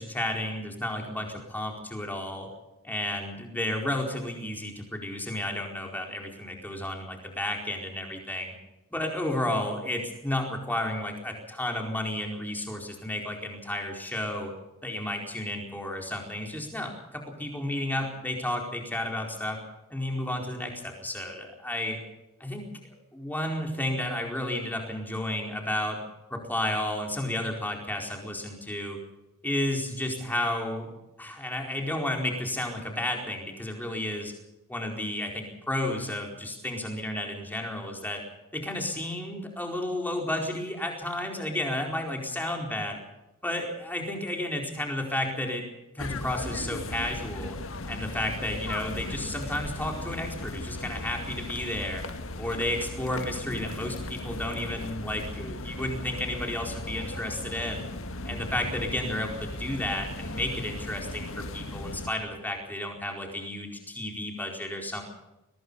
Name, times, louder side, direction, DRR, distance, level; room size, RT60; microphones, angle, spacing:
voice 1, 0.0-2.5 2.8-8.5 8.9-14.5 14.8-19.6 19.9-22.0 22.4-22.7 23.1-26.0 26.3-29.0 29.4-30.9 31.2-34.3 34.7-38.2 38.5-42.9 43.4-45.6 45.9-47.6 47.9-52.0 52.3-57.8 58.2-65.0, left 1 dB, 10° left, 1 dB, 4.5 m, -32 dB
sound 1, 46.0-62.1, left 2 dB, 60° left, 1.8 m, -37 dB
23.0 x 20.5 x 5.5 m, 0.98 s
head